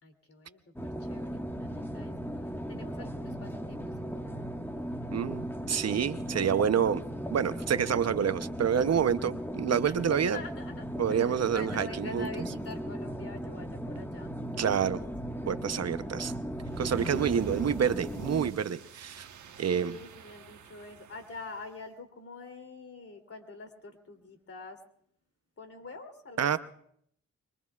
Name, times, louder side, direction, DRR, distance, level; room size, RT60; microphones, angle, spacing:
voice 1, 0.0-2.1 2.7-4.4 9.8-9.9 10.3-14.9 19.7-24.8 25.6-26.5, left 3 dB, 50° left, 5 dB, 2.9 m, -46 dB
sound 1, 0.8-18.5, equal, 5° left, 1.5 m, -37 dB
voice 2, 5.1-7.0 7.3-10.4 11.0-12.3 14.6-15.0 15.5-16.3 16.8-19.3 19.6-20.0 26.4-26.6, right 8 dB, 60° right, 12 dB, 0.8 m, -28 dB
sound 2, 16.6-21.6, right 6 dB, 80° right, 1.2 m, -46 dB
24.5 x 23.0 x 2.4 m, 0.67 s
cardioid pair, 60°, 29 cm